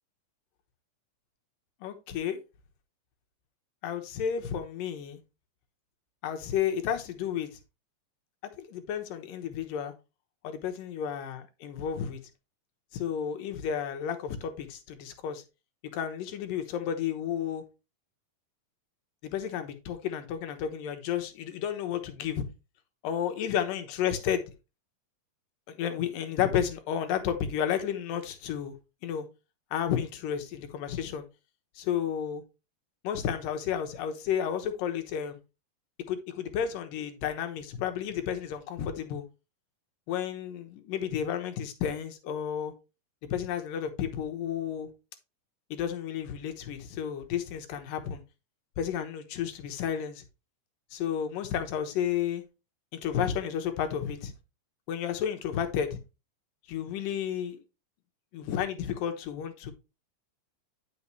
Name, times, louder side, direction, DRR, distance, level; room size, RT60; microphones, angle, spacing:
voice 1, 1.8-2.4 3.8-5.2 6.2-7.5 8.6-9.9 10.4-12.2 12.9-15.4 15.9-17.6 19.2-22.4 23.0-24.5 25.7-28.7 29.0-29.3 29.7-31.2 31.8-32.4 33.0-35.4 36.1-39.2 40.1-42.7 43.3-44.9 45.7-48.2 48.8-50.2 50.9-52.4 52.9-54.3 54.9-56.0 56.7-57.6 58.3-59.7, left 9 dB, 80° left, 2.9 m, -32 dB
9.7 x 6.4 x 3.1 m
omnidirectional pair, 3.9 m